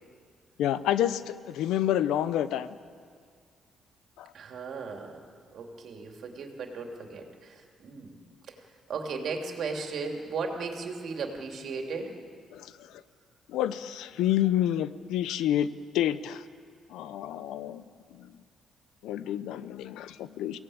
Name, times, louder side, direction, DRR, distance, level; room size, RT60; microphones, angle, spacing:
voice 1, 0.6-2.7 4.2-4.3 12.5-12.7 13.5-15.7 15.9-16.4 16.9-17.8 18.1-18.3 19.0-20.6, left 11 dB, 90° left, 14 dB, 0.8 m, -28 dB
voice 2, 4.3-5.2 5.5-8.2 8.5-8.6 8.9-12.1, right 4 dB, 65° right, 2 dB, 3.0 m, -36 dB
23.0 x 17.0 x 8.8 m, 2.1 s
cardioid pair, 90°, 0 cm